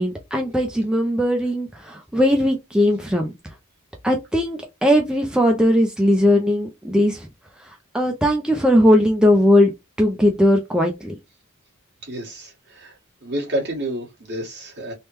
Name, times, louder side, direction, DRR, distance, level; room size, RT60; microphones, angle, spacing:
voice 1, 0.0-3.3 4.0-7.3 7.9-9.7 10.0-11.1, equal, 5° right, 0.4 m, -18 dB
voice 2, 12.0-12.9 13.2-14.9, right 1 dB, 50° right, 1.5 m, -29 dB
3.3 x 2.1 x 3.0 m
head